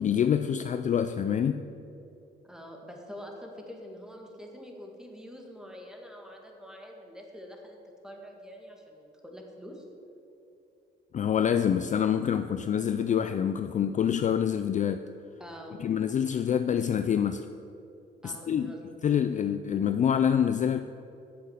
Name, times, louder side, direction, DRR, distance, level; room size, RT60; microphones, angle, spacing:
voice 1, 0.0-1.6 11.1-15.1 15.8-17.5 18.2-18.7 19.0-20.8, left 8 dB, 40° left, 10 dB, 0.4 m, -26 dB
voice 2, 2.4-7.8 8.0-9.8 15.4-15.8 18.2-18.8, equal, 5° right, 1 dB, 1.9 m, -45 dB
8.6 x 7.5 x 7.3 m, 2.8 s
cardioid pair, 90°, 20 cm